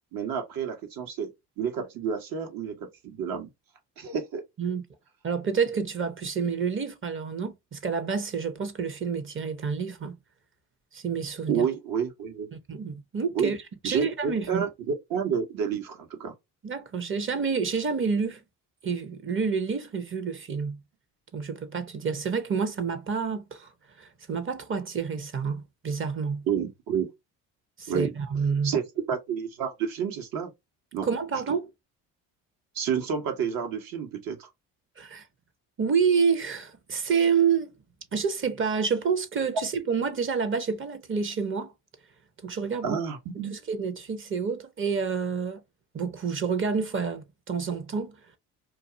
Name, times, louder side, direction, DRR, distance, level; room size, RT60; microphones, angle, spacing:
voice 1, 0.1-3.5 4.0-4.4 11.5-12.5 13.3-13.5 13.8-16.3 26.5-27.1 27.9-28.1 28.6-30.5 30.9-31.1 32.7-34.5 42.8-43.5, right 7 dB, 65° right, 1.2 m, -30 dB
voice 2, 5.2-10.2 10.9-11.6 12.5-13.6 13.8-14.7 16.6-18.4 18.8-20.8 21.3-23.7 24.0-26.4 27.8-28.7 31.0-31.7 35.0-35.2 35.8-37.7 38.1-41.7 42.4-43.0 43.5-45.6 45.9-48.2, right 6 dB, 35° right, 0.8 m, -28 dB
2.6 x 2.4 x 2.6 m
supercardioid pair, 75°, 38 cm